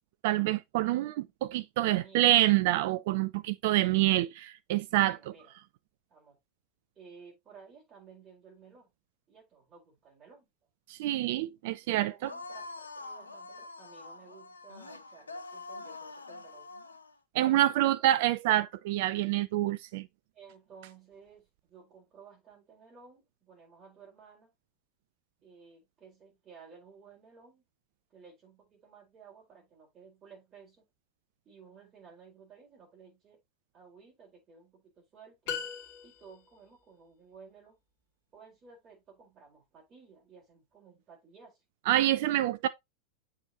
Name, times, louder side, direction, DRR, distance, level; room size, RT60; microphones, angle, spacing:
voice 1, 0.2-5.2 10.9-12.1 17.3-20.1 41.9-42.7, right 14 dB, 50° right, 0.4 m, -27 dB
voice 2, 1.8-2.4 5.0-5.6 6.1-6.4 7.0-8.9 9.3-10.5 11.8-16.7 17.4-17.9 20.3-24.5 25.4-27.6 28.1-30.8 31.4-33.4 33.7-35.5 36.0-37.8 38.3-41.6, right 5 dB, 25° right, 4.2 m, -55 dB
sound 1, 12.2-17.1, left 3 dB, 75° left, 0.6 m, -45 dB
sound 2, 35.5-36.6, left 7 dB, 45° left, 1.8 m, -38 dB
7.9 x 4.8 x 2.9 m
figure-of-eight pair, 90°, 0 cm